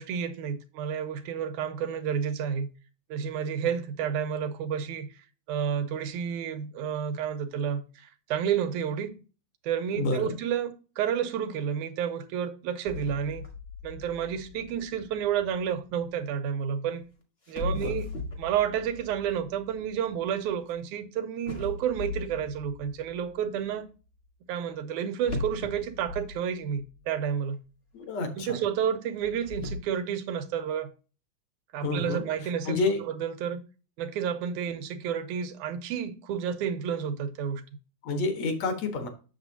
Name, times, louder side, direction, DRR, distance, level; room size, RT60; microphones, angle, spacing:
voice 1, 0.0-2.7 3.1-5.1 5.5-9.1 9.6-13.5 13.8-17.0 17.5-18.1 18.4-23.9 24.5-27.6 28.4-30.9 31.7-32.8 33.2-33.6 34.0-37.6, right 8 dB, 90° right, 2.3 m, -30 dB
voice 2, 9.9-10.4 17.6-17.9 27.9-28.6 31.8-33.1 38.0-39.1, left 3 dB, 65° left, 2.4 m, -29 dB
sound 1, 12.9-16.0 17.0-17.1 17.4-20.8 21.4-23.3 25.2-27.0 27.3-27.4 28.0-28.1 29.1-29.8, left 3 dB, 35° left, 1.1 m, -38 dB
8.1 x 7.1 x 2.7 m
omnidirectional pair, 3.4 m